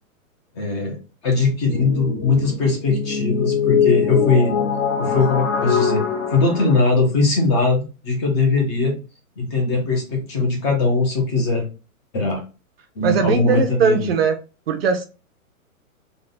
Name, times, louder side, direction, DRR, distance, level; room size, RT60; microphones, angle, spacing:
voice 1, 0.5-1.0 1.2-4.6 5.0-6.0 6.3-8.9 9.4-11.7 12.1-12.4 13.0-14.1, left 3 dB, 20° left, 1 dB, 0.7 m, -20 dB
sound 1, 1.7-6.7, left 7 dB, 50° left, 1.3 m, -22 dB
voice 2, 13.0-14.4 14.7-15.0, right 5 dB, 45° right, 5 dB, 0.6 m, -19 dB
3.6 x 2.3 x 3.8 m, 0.31 s
hypercardioid pair, 155°, 43 cm